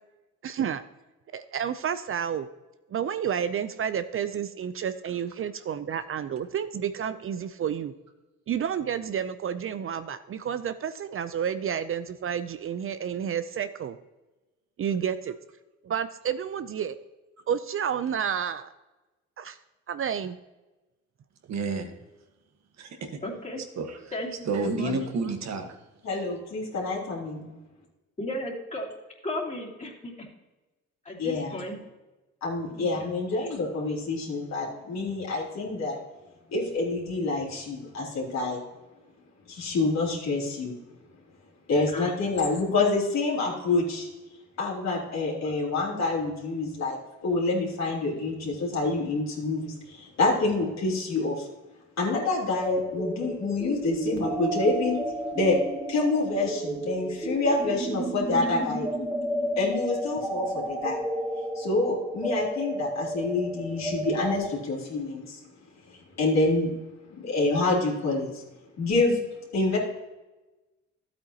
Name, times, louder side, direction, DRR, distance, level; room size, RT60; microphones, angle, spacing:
voice 1, 0.4-0.8 1.3-2.5 2.9-7.9 8.5-14.0 14.8-15.3 15.8-17.0 17.5-18.7 19.4-19.6 19.9-20.4, right 8 dB, 45° right, 12 dB, 0.5 m, -30 dB
voice 2, 21.5-21.9 22.8-23.2 23.8-24.0 24.5-25.7, right 3 dB, 60° right, 5 dB, 1.4 m, -30 dB
voice 3, 23.2-23.6 24.1-24.3 24.6-25.0 28.2-28.9 29.2-30.1 31.0-31.8 32.8-33.1 41.9-42.1 58.4-58.8, left 1 dB, 25° left, -3 dB, 2.9 m, -35 dB
voice 4, 26.0-27.5 31.2-31.5 32.4-36.0 36.5-38.6 39.5-40.7 41.7-44.1 44.6-47.0 47.2-51.5 52.0-55.0 55.3-55.6 55.9-58.9 59.6-61.0 61.5-65.4 65.9-66.7 67.1-68.4 68.8-69.2 69.5-69.8, left 3 dB, 60° left, -3 dB, 3.4 m, -27 dB
sound 1, 52.6-64.5, right 1 dB, 5° right, 1.2 m, -32 dB
12.5 x 8.5 x 2.9 m, 1.1 s
cardioid pair, 90°, 30 cm